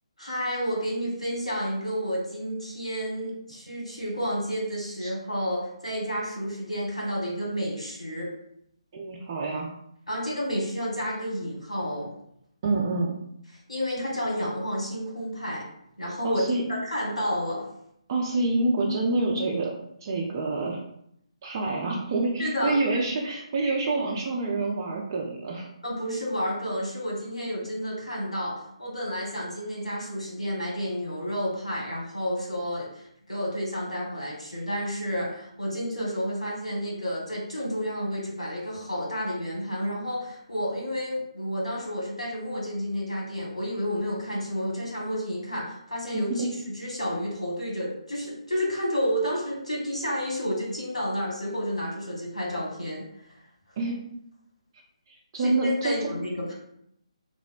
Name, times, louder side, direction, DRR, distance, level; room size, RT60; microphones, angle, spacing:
voice 1, 0.2-8.3 10.1-12.1 13.7-15.6 16.0-16.4 16.7-17.7 22.4-22.8 25.8-53.0 53.3-53.4 55.4-56.5, equal, 85° left, -4 dB, 1.2 m, -30 dB
voice 2, 8.9-9.7 12.6-13.1 16.2-16.6 18.1-19.7 20.0-20.8 21.4-25.7 46.4-46.5 53.8-54.0 55.1-56.1, right 2 dB, 30° right, -2 dB, 0.3 m, -27 dB
2.8 x 2.0 x 2.4 m, 0.74 s
figure-of-eight pair, 145°, 3 cm